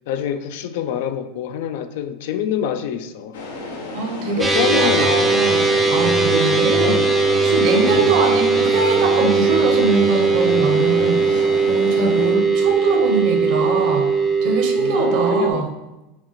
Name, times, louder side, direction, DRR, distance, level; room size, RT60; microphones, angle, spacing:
voice 1, 0.1-3.4 4.4-5.7 6.8-7.2 7.7-8.2 14.8-15.6, left 9 dB, 70° left, 9 dB, 0.3 m, -26 dB
sound 1, 3.3-12.3, left 2 dB, 90° left, 0.7 m, -32 dB
voice 2, 3.9-7.0 7.4-14.1 14.4-15.7, right 3 dB, 60° right, 3 dB, 0.7 m, -23 dB
sound 2, 4.4-15.5, right 4 dB, 10° right, 0.4 m, -18 dB
5.7 x 2.1 x 3.1 m, 0.98 s
supercardioid pair, 125°, 0 cm